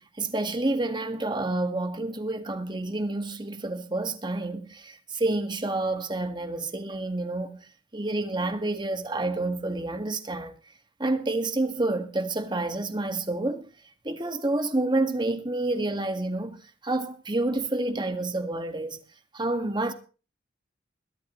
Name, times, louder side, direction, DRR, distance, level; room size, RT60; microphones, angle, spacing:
voice 1, 0.0-7.6 7.9-10.6 11.0-13.6 14.0-16.6 16.8-19.0 19.3-19.9, right 2 dB, 25° right, 1.8 m, -29 dB
21.5 x 12.5 x 3.1 m
head